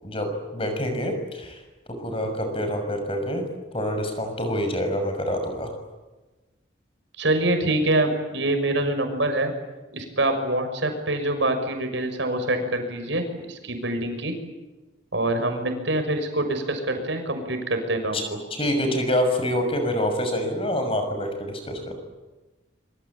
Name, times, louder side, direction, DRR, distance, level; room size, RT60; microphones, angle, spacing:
voice 1, 0.0-1.6 2.0-3.4 3.7-5.7 18.1-18.2 18.5-22.0, equal, 30° left, 6 dB, 6.5 m, -26 dB
voice 2, 7.2-9.5 9.9-13.2 13.5-14.3 15.1-18.4, right 1 dB, 70° right, 6 dB, 6.4 m, -25 dB
26.5 x 25.0 x 8.8 m, 1.1 s
head